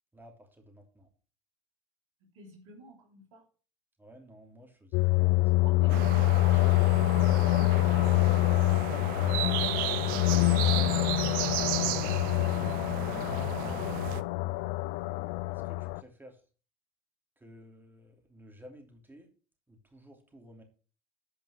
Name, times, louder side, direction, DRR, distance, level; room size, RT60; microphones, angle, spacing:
voice 1, 0.1-1.1 4.0-5.7 13.3-13.6 15.5-16.4 17.4-19.3 19.7-20.6, equal, 10° right, 3 dB, 2.9 m, -54 dB
voice 2, 2.3-3.4 5.6-8.3 11.8-12.8, right 3 dB, 80° right, 0 dB, 3.1 m, -50 dB
sound 1, 4.9-16.0, left 19 dB, 65° left, 0.5 m, -26 dB
sound 2, 5.9-14.2, right 15 dB, 65° right, 0.6 m, -34 dB
8.9 x 5.3 x 6.4 m, 0.38 s
hypercardioid pair, 75°, 16 cm